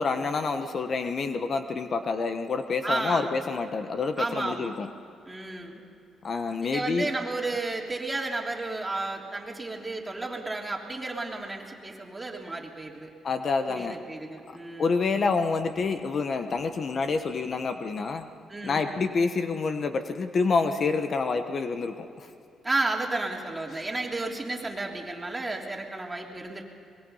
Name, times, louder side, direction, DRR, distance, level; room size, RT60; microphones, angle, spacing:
voice 1, 0.0-4.9 6.2-7.1 13.2-14.0 14.8-18.3 18.6-22.3 23.7-23.8, left 4 dB, 45° left, 8 dB, 1.2 m, -28 dB
voice 2, 2.8-3.3 4.2-4.7 5.3-5.8 6.6-13.1 13.7-14.9 18.5-18.9 22.6-26.6, right 2 dB, 15° right, 0 dB, 3.3 m, -32 dB
24.5 x 21.0 x 5.6 m, 2.6 s
cardioid pair, 90°, 0 cm